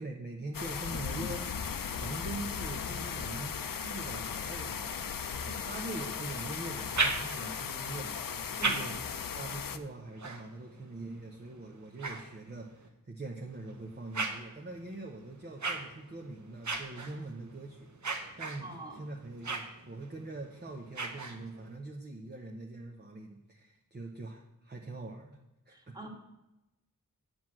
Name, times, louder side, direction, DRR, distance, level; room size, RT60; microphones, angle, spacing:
voice 1, 0.0-4.9 5.4-8.9 9.3-17.9 18.4-25.4 25.7-26.0, right 2 dB, 30° right, 1 dB, 0.9 m, -43 dB
sound 1, 0.5-9.8, left 7 dB, 70° left, 0.6 m, -37 dB
sound 2, 6.7-7.7 8.3-12.9 13.5-21.8, right 3 dB, 55° right, 1.1 m, -39 dB
voice 2, 18.3-19.0 25.7-26.1, right 2 dB, 10° right, -1 dB, 2.0 m, -45 dB
8.0 x 6.1 x 7.7 m, 0.93 s
wide cardioid pair, 85°, 34 cm